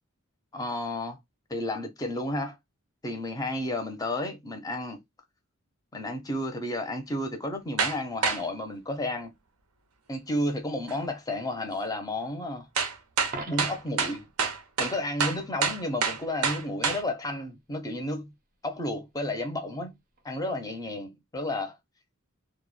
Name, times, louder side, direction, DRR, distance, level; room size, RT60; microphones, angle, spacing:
voice 1, 0.5-1.2 1.5-2.6 3.0-5.0 5.9-9.3 10.1-12.7 13.5-14.3 14.8-18.3 18.6-20.0 20.2-21.8, left 1 dB, 15° left, 0.4 m, -32 dB
sound 1, 7.8-8.0 8.2-8.4 10.9-11.0 12.8-17.0, right 5 dB, 85° right, 0.6 m, -27 dB
Coin (dropping), 13.2-14.1 20.2-20.3, right 3 dB, 40° right, 0.5 m, -40 dB
2.1 x 2.0 x 3.0 m
head